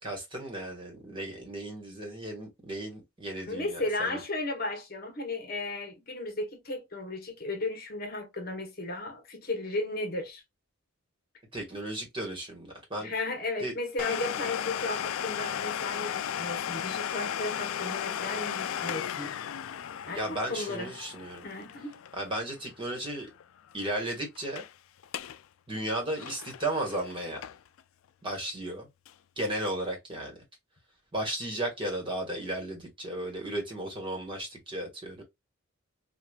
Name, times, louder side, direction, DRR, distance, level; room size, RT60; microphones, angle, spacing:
voice 1, 0.0-4.2 11.5-13.1 13.6-13.7 20.1-21.4 22.1-23.3 23.7-24.6 25.7-27.4 28.2-28.9 29.4-30.3 31.1-35.2, right 1 dB, 25° right, 1.3 m, -35 dB
voice 2, 3.4-10.4 13.0-19.3 20.0-20.9 21.4-22.0, left 2 dB, 45° left, 1.1 m, -35 dB
Domestic sounds home sounds, 14.0-23.4 23.7-23.8 24.4-24.7 25.0-25.4 25.7-27.8 28.3-28.4 29.1-29.2, left 9 dB, 70° left, 0.3 m, -35 dB
4.8 x 2.3 x 2.3 m
head